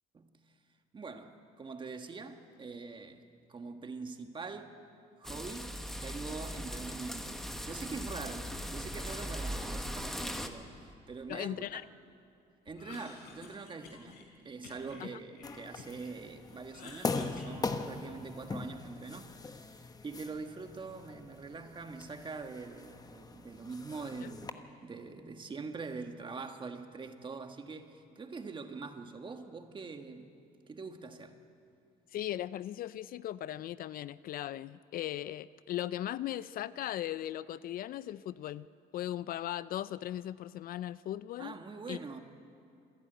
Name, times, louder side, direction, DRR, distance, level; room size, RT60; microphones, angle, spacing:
voice 1, 0.9-3.2 3.5-4.8 5.2-11.9 12.6-19.8 20.0-30.3 30.7-31.4 41.4-42.2, right 4 dB, 30° right, 1.5 m, -44 dB
sound 1, 5.2-10.5, equal, ahead, 1.3 m, -39 dB
voice 2, 11.3-11.8 15.0-15.1 32.1-38.7 38.9-41.5 41.9-42.0, left 12 dB, 60° left, 0.4 m, -38 dB
Cough, 12.7-14.2 14.6-16.1 16.4-18.3, left 4 dB, 80° left, 4.1 m, -51 dB
sound 2, 15.4-24.5, left 4 dB, 20° left, 1.1 m, -41 dB
27.5 x 11.0 x 9.1 m
cardioid pair, 110°, 17 cm